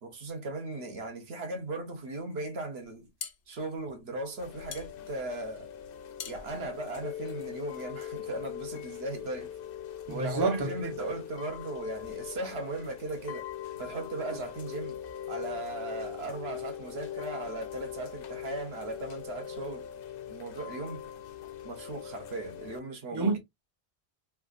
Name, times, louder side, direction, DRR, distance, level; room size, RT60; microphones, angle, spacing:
voice 1, 0.0-3.1 3.5-5.7 6.3-9.5 10.1-13.5 13.8-15.0 15.3-19.9 20.3-21.0 21.6-23.3, right 2 dB, 65° right, 1.1 m, -37 dB
sound 1, 2.8-7.8, left 7 dB, 85° left, 1.0 m, -46 dB
Chime / Rain, 4.4-22.8, left 10 dB, 65° left, 0.7 m, -41 dB
voice 2, 10.1-10.9 23.1-23.4, right 3 dB, 25° right, 0.6 m, -29 dB
3.4 x 2.4 x 2.4 m
omnidirectional pair, 1.2 m